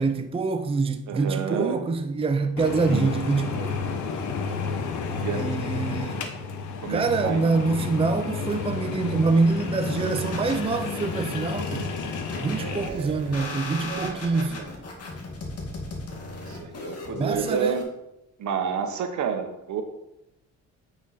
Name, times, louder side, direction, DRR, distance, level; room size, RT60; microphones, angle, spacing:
voice 1, 0.0-3.9 5.3-6.2 6.9-11.9 12.4-14.6 17.2-17.8, right 4 dB, 20° right, 0.5 m, -25 dB
voice 2, 1.1-1.8 2.9-3.1 5.2-5.5 6.8-7.4 12.6-14.7 16.5-17.8 18.4-19.8, right 6 dB, 70° right, 1.2 m, -30 dB
sound 1, 2.6-12.9, left 5 dB, 80° left, 1.1 m, -31 dB
sound 2, 9.8-17.8, left 2 dB, 55° left, 2.1 m, -36 dB
9.0 x 5.7 x 4.2 m
cardioid pair, 90°, 30 cm